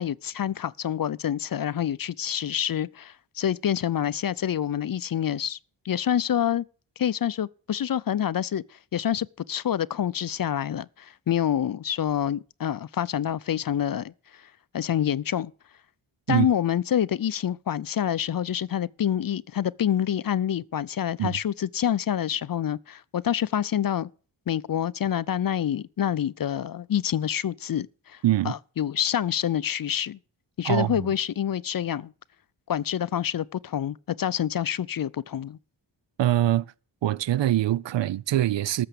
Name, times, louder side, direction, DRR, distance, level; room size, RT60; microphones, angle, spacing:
voice 1, 0.0-5.6 5.8-6.6 7.0-14.4 14.7-15.5 16.3-24.1 24.5-30.2 30.6-32.1 32.7-35.6, left 10 dB, 50° left, 0.5 m, -27 dB
voice 2, 28.2-28.5 30.6-31.1 36.2-36.7 37.0-38.9, right 13 dB, 70° right, 0.6 m, -23 dB
13.5 x 6.9 x 6.8 m
cardioid pair, 50°, 46 cm